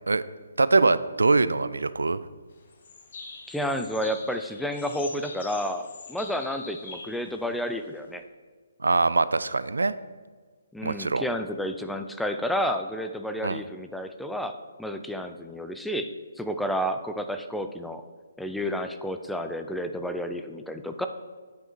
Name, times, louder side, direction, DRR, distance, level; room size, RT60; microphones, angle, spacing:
voice 1, 0.6-2.2 8.8-9.9 10.8-11.2 13.4-13.6, right 3 dB, 75° right, 15 dB, 0.3 m, -23 dB
sound 1, 2.5-8.2, left 4 dB, 50° left, 1.2 m, -44 dB
voice 2, 3.5-8.2 10.7-18.0 18.4-21.1, equal, ahead, 7 dB, 0.4 m, -31 dB
8.6 x 5.7 x 4.6 m, 1.5 s
figure-of-eight pair, 135°, 0 cm